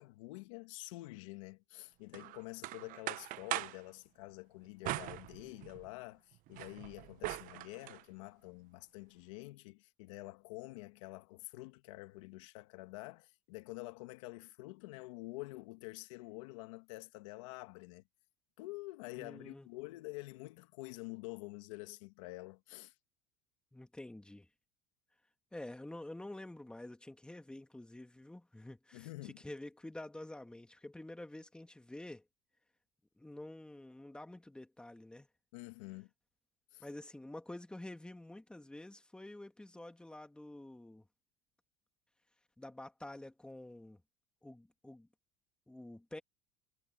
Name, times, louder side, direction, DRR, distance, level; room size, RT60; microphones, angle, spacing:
voice 1, 0.0-18.0 18.6-22.9 28.9-29.4 35.5-36.1 36.7-36.8, left 22 dB, 80° left, 2.1 m, -48 dB
sound 1, 2.1-3.8 4.8-5.9 6.3-8.0, right 18 dB, 60° right, 1.0 m, -41 dB
voice 2, 19.2-19.7 23.7-24.5 25.5-32.2 33.2-35.3 36.8-41.1 42.6-44.0 44.4-45.1 45.7-46.2, left 1 dB, 5° left, 2.3 m, -48 dB
supercardioid pair, 105°, 16 cm